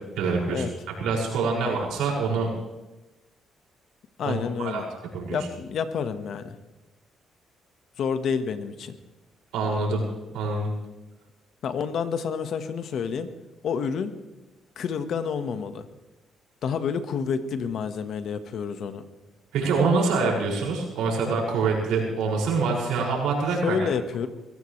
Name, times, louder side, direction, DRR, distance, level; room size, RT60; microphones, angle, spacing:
voice 1, 0.2-0.7 1.0-2.5 4.2-4.8 5.1-5.4 9.5-10.0 10.3-10.7 19.5-23.9, right 4 dB, 90° right, -2 dB, 6.2 m, -25 dB
voice 2, 4.2-4.9 5.3-6.6 8.0-9.0 11.6-13.3 13.6-14.1 14.8-15.9 16.6-19.0 23.6-24.3, left 6 dB, 70° left, 9 dB, 1.5 m, -29 dB
23.5 x 16.0 x 3.3 m, 1.1 s
cardioid pair, 90°, 0 cm